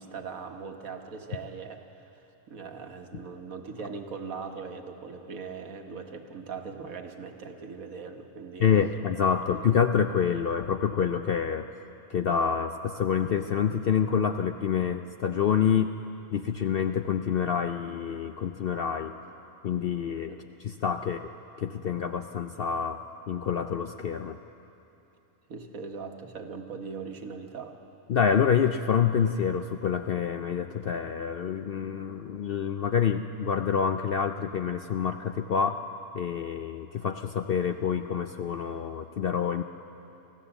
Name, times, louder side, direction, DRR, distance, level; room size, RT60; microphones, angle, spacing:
voice 1, 0.0-8.7 9.4-9.6 20.3-20.4 25.5-27.7, right 5 dB, 75° right, 4 dB, 1.7 m, -40 dB
voice 2, 8.6-11.7 12.1-15.9 16.3-19.1 19.6-20.3 20.6-21.2 21.6-23.0 23.3-24.4 28.1-35.8 36.1-39.6, left 7 dB, 60° left, 7 dB, 0.6 m, -27 dB
24.0 x 15.5 x 7.1 m, 3.0 s
omnidirectional pair, 1.5 m